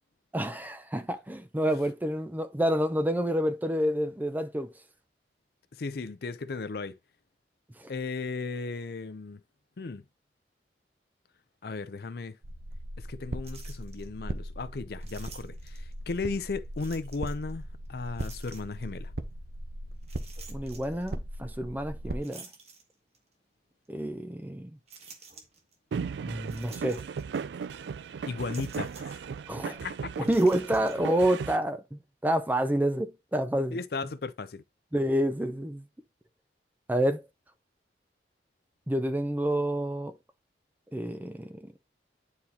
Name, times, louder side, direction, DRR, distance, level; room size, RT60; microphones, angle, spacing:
voice 1, 0.3-4.7 7.8-7.9 20.5-22.5 23.9-24.7 26.2-27.0 29.5-29.8 30.2-33.8 34.9-35.8 36.9-37.2 38.9-40.1 40.9-41.7, right 1 dB, 10° right, 0.5 m, -28 dB
voice 2, 5.7-7.0 7.9-9.4 9.8-10.0 11.6-12.4 13.0-19.1 28.3-29.2 29.7-30.1 33.7-34.6, left 4 dB, 60° left, 0.5 m, -36 dB
sound 1, 12.4-22.2, right 1 dB, 60° right, 0.8 m, -39 dB
sound 2, 13.4-14.1 15.0-15.9 16.8-17.5 18.2-18.9 20.0-21.1 22.2-23.3 23.8-23.9 24.9-25.8 26.5-27.4 27.6-27.8 28.5-29.2 30.2-31.0, right 5 dB, 35° right, 1.3 m, -50 dB
sound 3, 25.9-31.6, right 6 dB, 75° right, 0.3 m, -36 dB
9.7 x 4.2 x 2.8 m
head